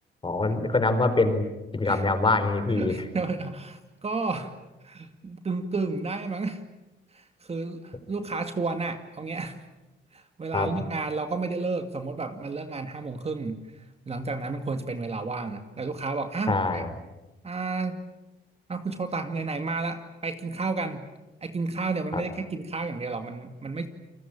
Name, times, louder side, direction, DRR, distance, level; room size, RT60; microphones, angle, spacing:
voice 1, 0.2-1.4 1.7-3.0 10.5-10.7 16.5-16.9 22.1-22.2, left 3 dB, 25° left, 9 dB, 4.6 m, -24 dB
voice 2, 2.7-4.5 4.8-6.6 7.1-9.6 10.1-16.9 17.4-18.0 18.7-21.0 21.4-23.9, right 3 dB, 30° right, 7 dB, 2.3 m, -32 dB
29.0 x 21.5 x 8.8 m, 1.0 s
cardioid pair, 90°, 20 cm